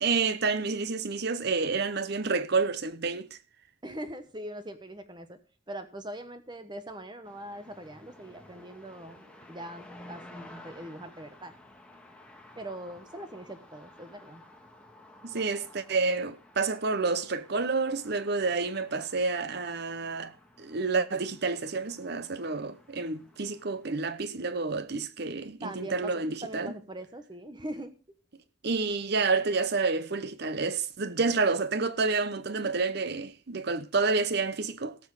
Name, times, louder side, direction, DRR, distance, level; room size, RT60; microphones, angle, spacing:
voice 1, 0.0-3.4 15.2-26.7 28.6-35.0, right 4 dB, 55° right, 0.8 m, -29 dB
voice 2, 3.8-5.4 5.7-11.5 12.6-14.4 25.6-28.0, right 1 dB, 20° right, 1.2 m, -42 dB
sound 1, 7.2-24.0, left 1 dB, 5° left, 1.5 m, -53 dB
17.5 x 6.2 x 4.8 m
head